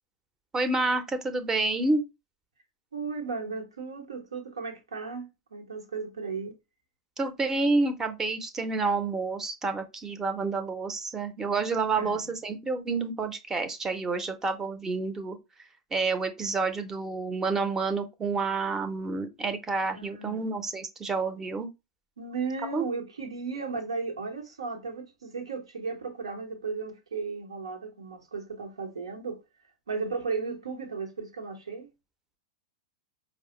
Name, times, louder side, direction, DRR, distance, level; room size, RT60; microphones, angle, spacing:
voice 1, 0.5-2.0 7.2-15.4 15.9-21.7 22.7-22.8, right 3 dB, 15° right, 0.7 m, -29 dB
voice 2, 2.9-6.5 11.9-12.3 19.9-20.4 22.2-29.4 29.9-31.9, right 4 dB, 80° right, 1.0 m, -35 dB
4.7 x 2.0 x 3.0 m
figure-of-eight pair, 100°, 3 cm